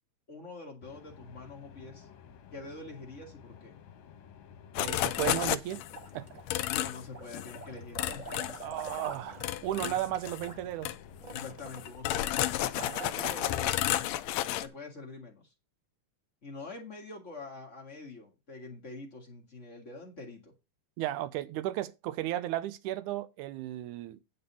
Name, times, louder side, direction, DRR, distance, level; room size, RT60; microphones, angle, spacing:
voice 1, 0.3-2.1 2.5-3.7 6.7-8.7 11.3-14.1 14.6-15.5 16.4-20.5, left 3 dB, 35° left, 1.2 m, -46 dB
sound 1, 0.8-11.9, left 8 dB, 65° left, 2.2 m, -53 dB
sound 2, 4.8-6.0 6.5-7.0 7.3-7.6 8.0-9.1 9.4-10.5 10.8-11.0 11.3-14.7, left 14 dB, 85° left, 1.5 m, -32 dB
voice 2, 4.8-5.8 6.1-6.3 8.6-10.9 12.9-13.2 21.0-24.2, right 14 dB, 75° right, 2.1 m, -34 dB
sound 3, 5.9-6.7 7.1-13.8, right 3 dB, 25° right, 0.9 m, -46 dB
9.7 x 4.0 x 6.8 m
omnidirectional pair, 3.9 m